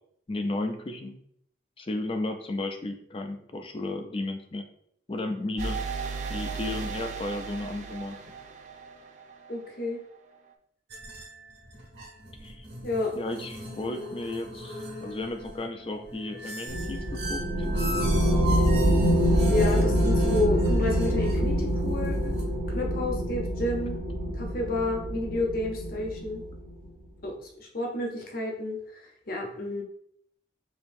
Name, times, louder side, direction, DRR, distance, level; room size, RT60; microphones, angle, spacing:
voice 1, 0.3-1.2 1.8-4.7 5.1-5.8 6.3-8.2 12.4-12.7 13.1-17.7, left 2 dB, 30° left, 6 dB, 0.4 m, -34 dB
sound 1, 5.6-9.3, right 5 dB, 40° right, 0.4 m, -35 dB
voice 2, 9.5-10.0 12.8-13.1 19.5-22.3 22.7-24.0 24.3-26.4 27.2-29.8, left 1 dB, 50° left, 0 dB, 0.8 m, -30 dB
sound 2, 10.9-22.4, right 1 dB, 60° right, 1.4 m, -39 dB
sound 3, 16.7-26.7, equal, 75° right, 0.9 m, -25 dB
5.1 x 2.8 x 2.6 m, 0.68 s
head